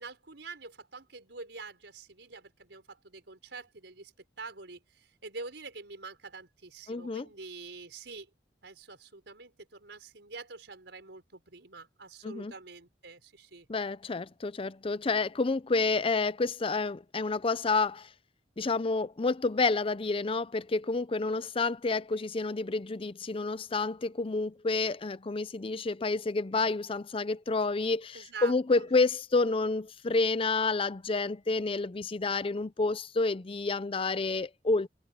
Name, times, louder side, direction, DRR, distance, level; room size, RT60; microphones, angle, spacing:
voice 1, 0.0-8.3 8.6-13.7 28.1-28.9, right 4 dB, 85° right, 4.5 m, -46 dB
voice 2, 6.9-7.3 12.2-12.5 13.7-18.1 18.6-34.9, left 3 dB, 30° left, 0.6 m, -29 dB
head